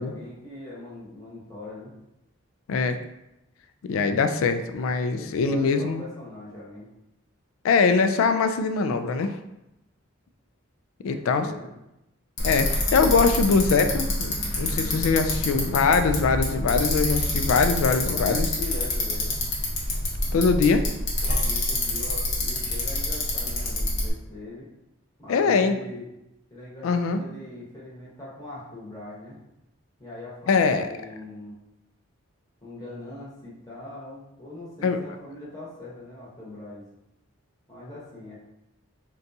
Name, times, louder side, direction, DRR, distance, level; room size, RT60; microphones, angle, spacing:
voice 1, 0.0-1.9 5.2-6.9 11.1-11.7 18.0-19.4 21.2-24.7 25.2-26.1 26.5-29.4 30.0-31.5 32.6-36.8 37.7-38.4, left 2 dB, 20° left, -7 dB, 1.0 m, -41 dB
voice 2, 3.8-6.0 7.6-9.4 11.0-11.5 12.4-18.5 20.3-20.8 25.3-25.7 26.8-27.2 30.5-30.9 34.8-35.0, left 4 dB, 80° left, 8 dB, 0.3 m, -22 dB
Bicycle, 12.4-24.1, left 1 dB, 60° left, 0.8 m, -27 dB
3.9 x 2.3 x 2.7 m, 0.88 s
head